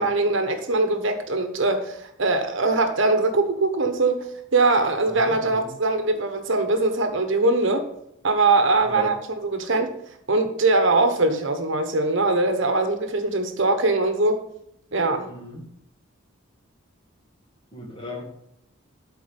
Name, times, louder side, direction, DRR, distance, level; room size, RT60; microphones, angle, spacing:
voice 1, 0.0-4.3 4.5-7.8 8.2-9.2 9.4-9.9 10.3-14.4 14.9-15.3, right 2 dB, 65° right, 7 dB, 1.1 m, -22 dB
voice 2, 5.2-5.7 8.8-9.1 15.3-15.7 17.7-18.2, equal, 25° left, 0 dB, 1.8 m, -36 dB
12.5 x 4.5 x 5.3 m, 0.76 s
head